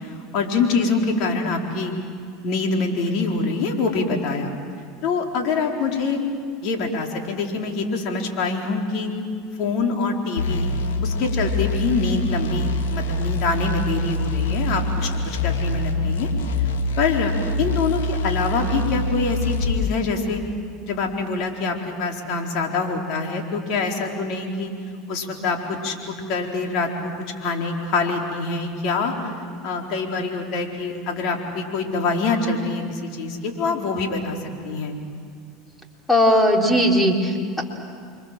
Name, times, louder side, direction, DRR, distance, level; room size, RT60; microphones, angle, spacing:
voice 1, 0.0-1.9 2.4-4.5 5.0-6.2 6.6-9.1 9.6-10.7 11.0-16.3 16.6-16.7 17.0-17.3 17.6-20.4 20.9-24.7 25.1-27.1 27.4-29.1 29.6-34.4 34.6-35.0, left 4 dB, 60° left, 1 dB, 4.3 m, -25 dB
sound 1, 10.4-19.8, left 1 dB, 85° left, 2.5 m, -25 dB
voice 2, 36.1-37.6, equal, 10° left, 1 dB, 4.1 m, -18 dB
29.5 x 24.5 x 7.6 m, 2.3 s
hypercardioid pair, 95°, 0 cm